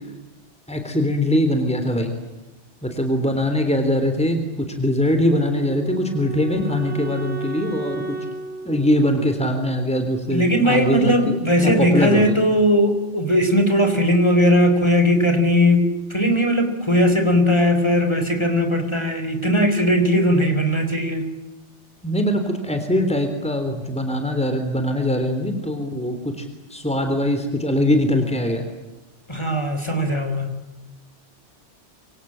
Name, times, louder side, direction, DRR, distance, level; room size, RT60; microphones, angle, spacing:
voice 1, 0.7-2.1 2.8-8.2 8.7-12.4 22.0-26.5 26.7-28.6, left 1 dB, 5° left, 6 dB, 3.6 m, -22 dB
Wind instrument woodwind instrument, 5.3-10.4, right 3 dB, 65° right, 4.4 m, -34 dB
voice 2, 10.3-21.3 29.3-30.5, equal, 25° left, 7 dB, 4.3 m, -18 dB
27.0 x 25.0 x 8.8 m, 1.0 s
omnidirectional pair, 1.2 m